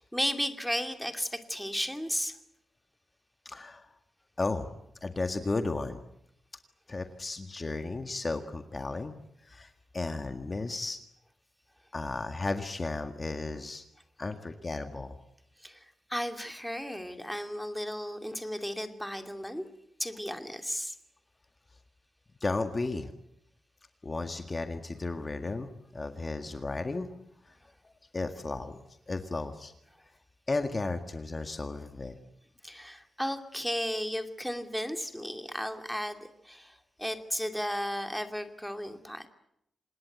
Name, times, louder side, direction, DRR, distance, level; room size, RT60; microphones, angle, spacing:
voice 1, 0.0-2.4 15.6-19.7 20.0-21.0 32.6-39.3, equal, ahead, 6 dB, 2.6 m, -34 dB
voice 2, 3.5-4.0 4.4-4.7 5.0-6.0 6.9-9.2 9.4-11.0 11.9-13.8 14.2-15.2 22.4-23.1 24.0-27.1 27.4-27.6 28.1-28.8 29.1-29.7 30.5-32.1, left 3 dB, 30° left, 6 dB, 1.8 m, -34 dB
27.0 x 20.0 x 9.4 m, 0.79 s
cardioid pair, 105°, 0 cm